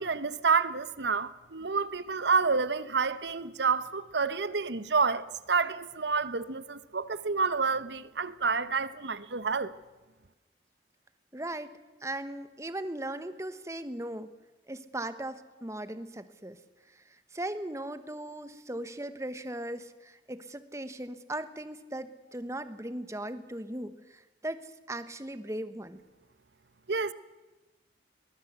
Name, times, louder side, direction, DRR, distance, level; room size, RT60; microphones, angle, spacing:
voice 1, 0.0-9.7 26.9-27.1, right 5 dB, 75° right, 1.0 m, -29 dB
voice 2, 11.3-11.7 12.0-14.3 14.7-16.6 17.3-24.6 24.9-26.0, right 1 dB, 15° right, 1.2 m, -38 dB
22.5 x 20.0 x 8.1 m
head